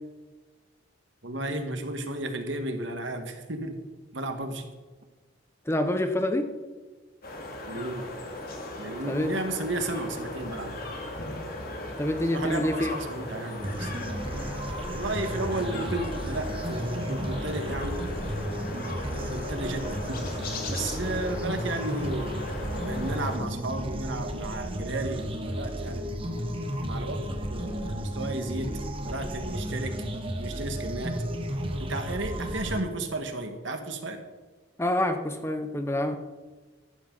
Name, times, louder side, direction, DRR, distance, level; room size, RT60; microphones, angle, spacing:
voice 1, 1.2-3.8 4.1-4.7 7.7-8.1 8.8-10.8 12.3-13.9 14.9-18.0 19.1-20.4 20.7-22.3 22.7-26.2 26.8-27.2 27.5-28.7 29.0-29.9 30.4-31.1 31.8-34.2, right 2 dB, 65° right, 6 dB, 1.7 m, -33 dB
voice 2, 5.6-6.5 9.0-9.3 12.0-12.9 34.8-36.2, left 1 dB, 15° left, 7 dB, 0.9 m, -27 dB
sound 1, 7.2-23.4, left 1 dB, 45° left, 2.4 m, -37 dB
sound 2, 13.6-32.8, equal, 25° right, 1.2 m, -33 dB
14.5 x 12.0 x 4.0 m, 1.3 s
head